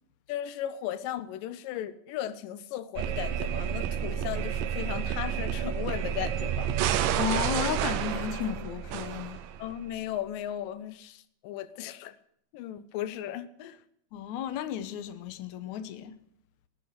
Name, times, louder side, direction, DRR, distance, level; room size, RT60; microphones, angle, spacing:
voice 1, 0.3-6.7 9.6-12.2 12.5-13.8, left 11 dB, 85° left, 2.4 m, -36 dB
sound 1, 3.0-9.8, right 9 dB, 85° right, 2.4 m, -30 dB
voice 2, 7.2-9.4 14.1-16.2, left 10 dB, 70° left, 2.1 m, -33 dB
18.5 x 9.1 x 6.5 m
omnidirectional pair, 3.8 m